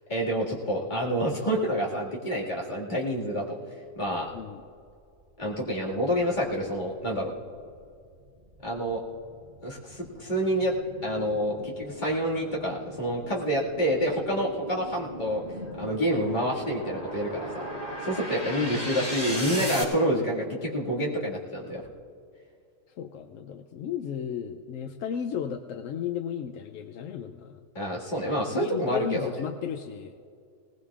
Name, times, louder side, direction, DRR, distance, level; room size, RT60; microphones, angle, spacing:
voice 1, 0.1-3.6 4.0-4.3 5.4-7.3 8.6-9.0 9.6-10.7 11.0-15.4 15.8-17.7 18.0-21.8 27.7-29.4, equal, 35° left, -4 dB, 2.2 m, -28 dB
sound 1, 5.1-5.2 5.7-19.8, equal, 30° right, 2.5 m, -38 dB
voice 2, 19.3-19.8 22.9-27.6 28.5-30.1, left 8 dB, 80° left, 7 dB, 1.0 m, -34 dB
20.0 x 19.0 x 2.4 m, 2.3 s
omnidirectional pair, 1.3 m